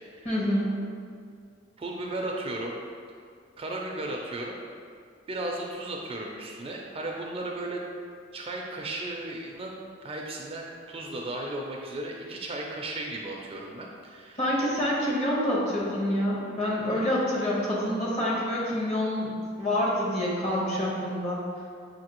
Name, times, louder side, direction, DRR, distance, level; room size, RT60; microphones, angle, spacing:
voice 1, 0.2-0.7 14.4-21.4, left 1 dB, 35° left, -5 dB, 1.0 m, -27 dB
voice 2, 1.8-2.7 3.6-4.6 5.3-7.8 8.3-14.4, right 2 dB, 30° right, 0 dB, 0.4 m, -35 dB
6.5 x 2.7 x 2.9 m, 2.2 s
head